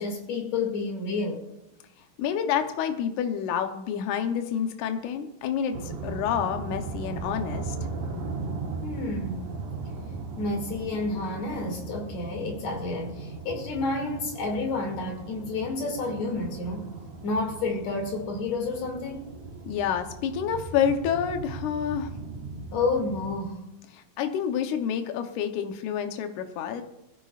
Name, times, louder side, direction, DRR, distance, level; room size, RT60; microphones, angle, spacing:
voice 1, 0.0-1.5 8.8-9.5 10.4-16.9 17.2-19.3 22.7-23.6, left 3 dB, 60° left, 3.6 m, -30 dB
voice 2, 2.2-7.8 19.7-22.1 23.9-26.8, left 8 dB, 75° left, 2.3 m, -28 dB
sound 1, 5.7-23.4, right 4 dB, 75° right, 3.4 m, -38 dB
21.5 x 15.0 x 2.4 m
omnidirectional pair, 3.6 m